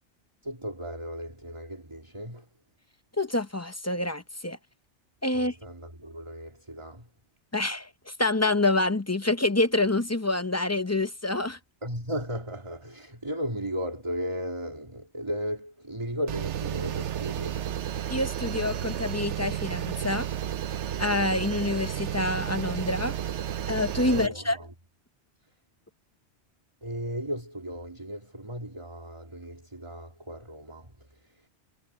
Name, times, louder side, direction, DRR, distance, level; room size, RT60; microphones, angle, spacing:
voice 1, 0.4-2.5 5.3-7.1 11.8-17.7 24.1-24.7 26.8-31.5, equal, 25° right, 2.4 m, -36 dB
voice 2, 3.2-4.6 5.2-5.5 7.5-11.6 18.1-20.3 21.0-23.2 23.7-24.6, left 2 dB, 15° left, 0.6 m, -27 dB
sound 1, 16.3-24.3, right 10 dB, 80° right, 1.0 m, -32 dB
omnidirectional pair, 1.2 m